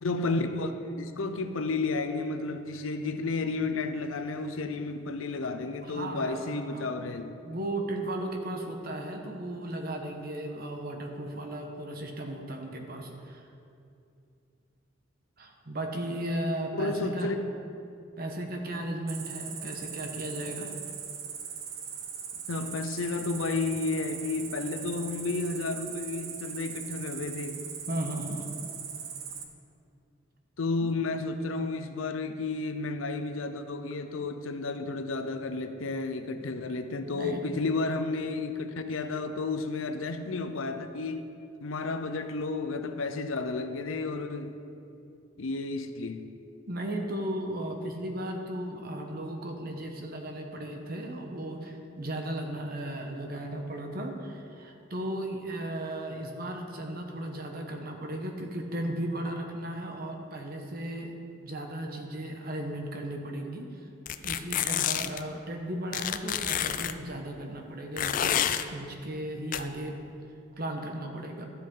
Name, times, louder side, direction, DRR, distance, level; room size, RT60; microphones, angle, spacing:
voice 1, 0.0-7.4 16.7-17.4 22.5-27.6 30.6-41.3 41.6-44.5 45.4-46.3, left 3 dB, 85° left, 0.6 m, -32 dB
voice 2, 5.8-6.9 7.4-13.4 15.4-17.3 18.2-20.7 27.9-28.5 30.8-30.9 36.3-36.4 37.0-37.4 46.7-61.1 61.4-63.9 64.2-70.0 70.6-71.5, right 1 dB, 50° right, 1.1 m, -36 dB
Cricket, 19.1-29.4, right 7 dB, 85° right, 0.9 m, -40 dB
sound 1, 64.1-65.2 65.9-66.9 68.0-68.6 69.5-69.6, left 10 dB, 40° left, 0.3 m, -28 dB
12.5 x 7.8 x 3.8 m
head